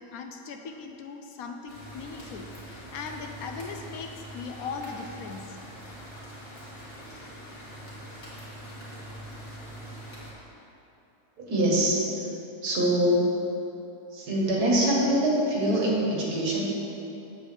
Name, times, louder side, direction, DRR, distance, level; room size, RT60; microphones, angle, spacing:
voice 1, 0.0-5.5, left 5 dB, 70° left, 4 dB, 0.9 m, -39 dB
sound 1, 1.7-10.3, equal, 40° left, 1.9 m, -43 dB
voice 2, 11.4-12.1 12.6-13.4 14.1-16.6, right 1 dB, 70° right, -4 dB, 1.9 m, -24 dB
7.8 x 4.3 x 6.6 m, 3.0 s
omnidirectional pair, 1.7 m